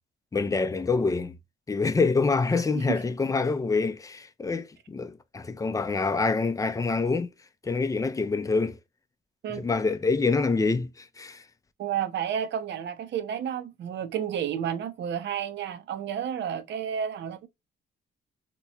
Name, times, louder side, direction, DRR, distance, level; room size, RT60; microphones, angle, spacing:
voice 1, 0.3-1.4 1.7-7.3 7.6-8.8 9.5-11.4, left 4 dB, 15° left, 0.5 m, -26 dB
voice 2, 11.8-17.5, right 9 dB, 65° right, 0.7 m, -31 dB
2.9 x 2.2 x 4.1 m
cardioid pair, 90°, 20 cm